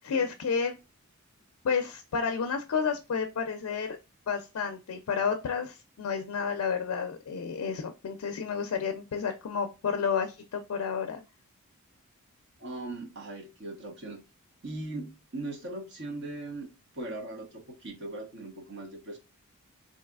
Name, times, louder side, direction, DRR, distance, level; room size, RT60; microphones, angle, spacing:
voice 1, 0.0-0.8 1.6-4.0 4.3-11.2, left 6 dB, 75° left, 6 dB, 0.4 m, -31 dB
voice 2, 12.6-14.2 14.6-16.7 16.9-19.2, right 2 dB, 50° right, 1 dB, 0.9 m, -39 dB
4.0 x 2.7 x 2.3 m, 0.28 s
head